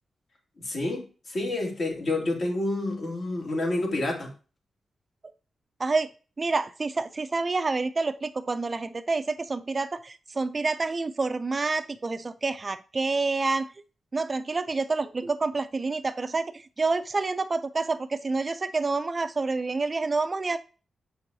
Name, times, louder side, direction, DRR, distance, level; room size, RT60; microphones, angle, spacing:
voice 1, 0.6-4.3, left 2 dB, 55° left, 1 dB, 2.2 m, -29 dB
voice 2, 6.4-13.7 14.1-20.6, right 3 dB, 30° right, 11 dB, 0.4 m, -28 dB
6.9 x 6.0 x 2.7 m, 0.36 s
wide cardioid pair, 120°, 0 cm